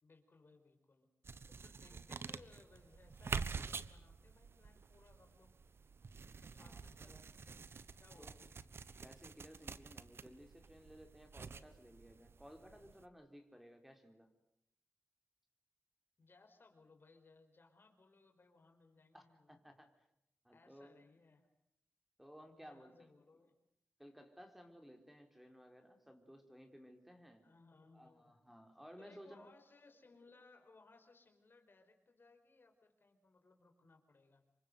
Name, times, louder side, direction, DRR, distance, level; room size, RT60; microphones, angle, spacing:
voice 1, 0.0-1.1 1.5-5.5 6.4-7.6 8.0-8.5 16.2-19.5 20.5-21.5 22.6-23.5 27.4-28.3 29.0-34.4, left 3 dB, 55° left, 6 dB, 4.9 m, -65 dB
sound 1, 1.2-13.0, right 5 dB, 65° right, 1.2 m, -48 dB
voice 2, 6.6-7.2 8.2-8.5 9.0-14.3 19.1-19.9 20.4-21.0 22.2-23.1 24.0-27.4 27.9-29.5, equal, 5° right, 5 dB, 4.1 m, -58 dB
27.0 x 24.0 x 8.0 m, 0.76 s
cardioid pair, 60°, 4 cm